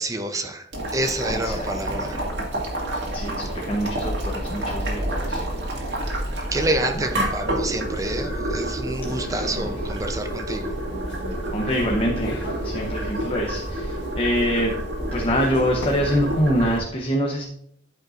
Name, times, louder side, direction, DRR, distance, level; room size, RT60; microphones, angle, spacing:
voice 1, 0.0-2.2 6.5-10.7, right 1 dB, 20° right, 7 dB, 0.6 m, -28 dB
Boiling, 0.7-16.8, right 1 dB, 70° right, 2.2 m, -29 dB
voice 2, 1.3-1.7 3.1-5.4 5.7-6.0 6.9-7.0 9.1-9.7 11.5-14.8 15.1-17.4, equal, 30° left, 0 dB, 0.9 m, -25 dB
sound 1, 1.9-16.2, left 1 dB, 80° left, 1.6 m, -42 dB
13.0 x 5.3 x 2.5 m, 0.70 s
head